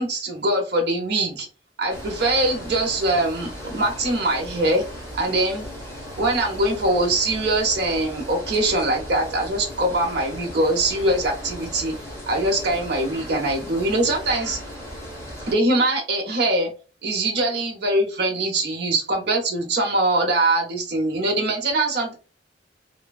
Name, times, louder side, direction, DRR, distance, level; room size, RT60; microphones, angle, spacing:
voice 1, 0.0-1.5 1.8-4.8 5.1-5.6 6.2-11.9 12.3-14.6 15.5-16.7 17.0-22.1, right 2 dB, 65° right, 1 dB, 0.7 m, -22 dB
sound 1, 1.9-15.5, equal, 15° left, 1.2 m, -37 dB
3.2 x 2.1 x 2.3 m, 0.34 s
head